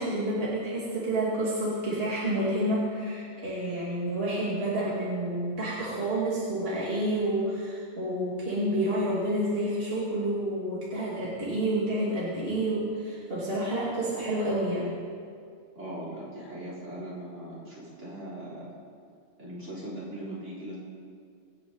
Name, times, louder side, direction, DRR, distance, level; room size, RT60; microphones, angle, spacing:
voice 1, 0.0-15.0, right 1 dB, 45° right, -8 dB, 2.7 m, -29 dB
voice 2, 15.7-18.7 19.4-20.8, right 1 dB, 65° right, -7 dB, 4.1 m, -39 dB
24.5 x 8.8 x 4.0 m, 2.3 s
omnidirectional pair, 1.3 m